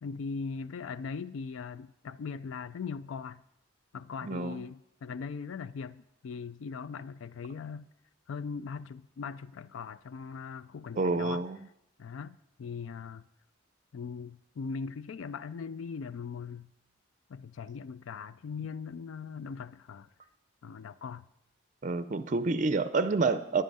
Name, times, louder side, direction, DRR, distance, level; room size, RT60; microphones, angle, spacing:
voice 1, 0.0-3.4 3.9-7.9 8.3-11.4 12.0-13.2 13.9-16.7 17.3-20.1 20.6-21.3, left 5 dB, 80° left, 0.4 m, -40 dB
voice 2, 4.2-4.6 11.0-11.6 21.8-23.6, right 3 dB, 40° right, 0.5 m, -28 dB
10.5 x 9.6 x 5.4 m
head